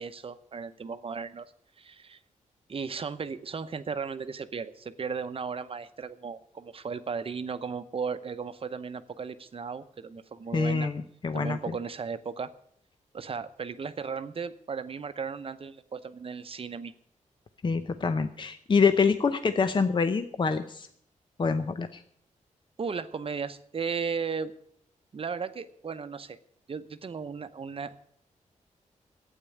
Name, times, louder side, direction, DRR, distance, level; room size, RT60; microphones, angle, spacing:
voice 1, 0.0-1.5 1.8-2.2 2.7-10.9 11.3-12.5 13.1-16.9 22.8-24.5 25.1-26.4 26.7-28.0, right 5 dB, 45° right, 11 dB, 0.8 m, -35 dB
voice 2, 10.5-11.6 17.6-20.9 21.4-22.0, left 5 dB, 35° left, 10 dB, 0.7 m, -26 dB
12.0 x 9.0 x 8.4 m, 0.66 s
wide cardioid pair, 115°, 13 cm